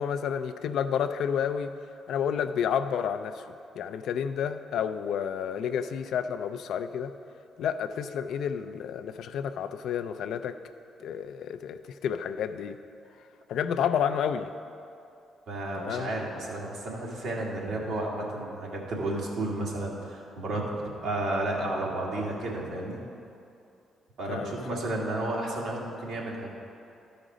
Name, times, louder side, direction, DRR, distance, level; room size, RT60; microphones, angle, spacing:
voice 1, 0.0-1.7 2.1-3.5 3.8-7.1 7.6-10.6 11.0-12.8 13.5-14.5 15.8-16.1 24.3-24.8, left 8 dB, 75° left, 9 dB, 0.4 m, -30 dB
voice 2, 15.5-23.0 24.2-26.5, right 2 dB, 80° right, -4 dB, 1.9 m, -32 dB
13.0 x 5.1 x 5.0 m, 2.6 s
cardioid pair, 80°, 0 cm